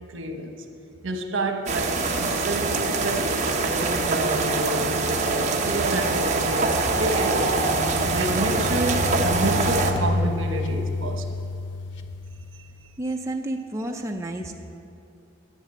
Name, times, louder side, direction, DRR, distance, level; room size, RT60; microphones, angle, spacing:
voice 1, 0.1-0.5 1.0-7.4 8.0-11.3 12.6-12.7, right 2 dB, 80° right, 4 dB, 1.1 m, -29 dB
sound 1, 1.7-9.9, right 3 dB, 40° right, 0.9 m, -24 dB
sound 2, 7.3-13.0, left 3 dB, 65° left, 0.6 m, -30 dB
voice 2, 13.0-14.5, right 1 dB, 15° right, 3 dB, 0.5 m, -30 dB
11.5 x 6.7 x 8.2 m, 2.5 s
head